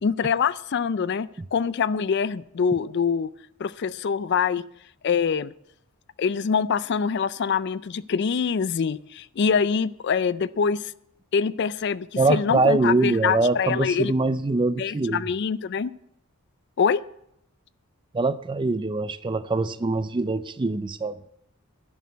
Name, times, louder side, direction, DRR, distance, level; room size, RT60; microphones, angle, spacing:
voice 1, 0.0-3.3 3.6-4.6 5.0-5.5 6.2-10.9 11.3-14.1 14.8-15.9 16.8-17.0, left 6 dB, 50° left, 0.4 m, -24 dB
voice 2, 12.2-15.3 18.1-21.2, right 3 dB, 20° right, 0.4 m, -23 dB
11.0 x 6.4 x 9.3 m
head